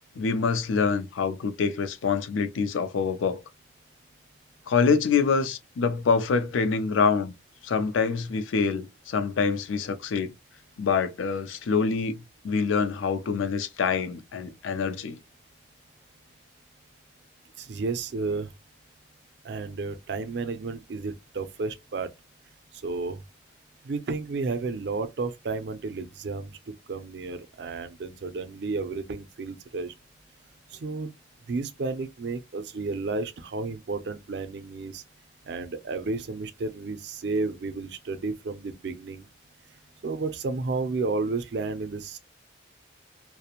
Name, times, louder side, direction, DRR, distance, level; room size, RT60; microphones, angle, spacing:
voice 1, 0.2-3.4 4.7-7.3 7.6-10.3 10.8-15.2, left 5 dB, 90° left, 0.4 m, -25 dB
voice 2, 17.6-18.5 19.4-22.1 22.7-23.2 23.8-29.9 30.7-31.1 31.5-35.0 35.4-39.3 40.0-42.2, right 3 dB, 60° right, 0.4 m, -32 dB
2.4 x 2.0 x 2.8 m
head